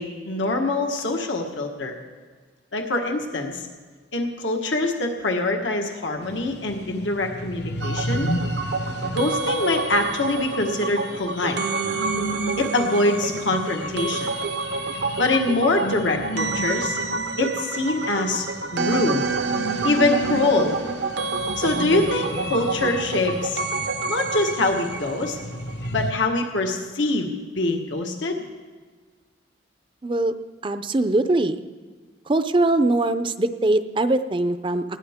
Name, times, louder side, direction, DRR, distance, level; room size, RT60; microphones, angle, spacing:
voice 1, 0.0-1.9 2.7-3.6 4.1-8.3 9.0-11.6 12.6-14.3 15.2-17.0 17.4-18.4 18.7-19.2 19.8-20.8 21.6-23.6 24.1-25.4 25.9-27.3 27.6-28.4, left 2 dB, 85° left, 3 dB, 1.4 m, -24 dB
sound 1, 6.2-26.1, equal, 65° left, 0.9 m, -34 dB
sound 2, 7.8-25.9 26.1-26.2, right 4 dB, 70° right, 0.7 m, -28 dB
voice 2, 30.0-30.3 30.6-31.6 32.3-34.8, right 2 dB, 25° right, 10 dB, 0.5 m, -21 dB
20.0 x 13.5 x 3.6 m, 1.5 s
head